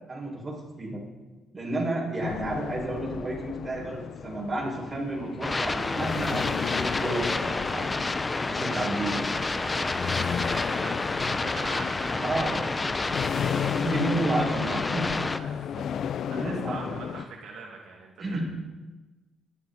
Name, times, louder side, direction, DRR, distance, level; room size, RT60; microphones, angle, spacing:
voice 1, 0.1-1.0 1.5-7.8 8.5-9.2 12.1-12.6 13.7-15.1 16.3-17.1 18.2-18.4, right 2 dB, 25° right, -3 dB, 5.6 m, -31 dB
sound 1, 2.2-17.2, left 8 dB, 60° left, 0.4 m, -34 dB
sound 2, 5.4-15.4, left 3 dB, 20° left, 0.6 m, -29 dB
voice 2, 9.3-12.5 15.3-18.4, right 4 dB, 75° right, -2 dB, 2.4 m, -44 dB
20.5 x 11.5 x 4.1 m, 1.2 s
cardioid pair, 115°, 0 cm